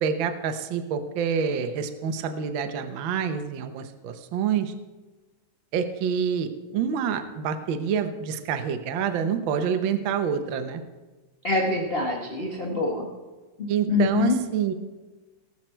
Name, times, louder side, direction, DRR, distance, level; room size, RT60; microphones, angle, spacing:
voice 1, 0.0-4.7 5.7-10.8 13.7-14.7, right 7 dB, 85° right, 7 dB, 1.0 m, -27 dB
voice 2, 11.4-13.1 13.6-14.4, left 2 dB, 50° left, 0 dB, 0.7 m, -25 dB
19.5 x 7.3 x 4.5 m, 1.2 s
omnidirectional pair, 3.6 m